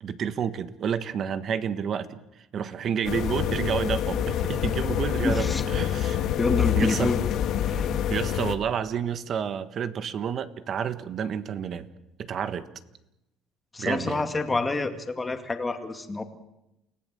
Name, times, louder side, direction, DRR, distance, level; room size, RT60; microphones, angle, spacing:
voice 1, 0.0-2.2 2.5-6.3 6.8-7.1 8.1-11.9 12.2-12.7 13.8-14.3, right 8 dB, 45° right, 12 dB, 1.4 m, -30 dB
sound 1, 3.0-8.6, left 10 dB, 60° left, 1.8 m, -26 dB
voice 2, 5.2-5.6 6.4-7.2 7.7-7.9 13.7-16.2, left 3 dB, 15° left, 6 dB, 2.1 m, -28 dB
29.0 x 18.0 x 7.6 m, 0.90 s
cardioid pair, 135°, 0 cm